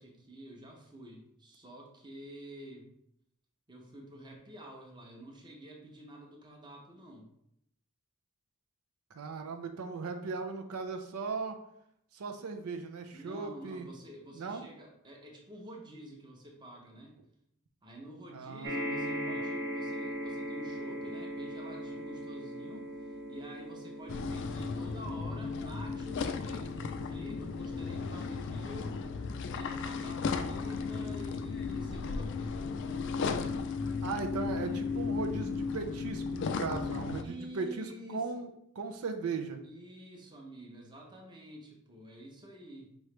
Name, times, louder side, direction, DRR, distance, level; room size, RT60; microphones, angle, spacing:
voice 1, 0.0-2.9 3.7-7.3 13.1-17.2 17.8-22.9 23.3-29.0 29.5-32.7 37.2-38.3 39.6-42.9, right 1 dB, 20° right, 0 dB, 0.7 m, -49 dB
voice 2, 9.1-11.6 12.1-13.9 14.3-14.7 18.3-19.4 34.0-38.5 38.8-39.6, right 4 dB, 85° right, 6 dB, 0.5 m, -38 dB
sound 1, 18.6-33.2 33.9-34.0 34.3-34.4, equal, 55° right, 0.8 m, -41 dB
sound 2, 24.1-37.2, left 4 dB, 55° left, 0.3 m, -35 dB
4.8 x 3.1 x 3.2 m, 0.76 s
head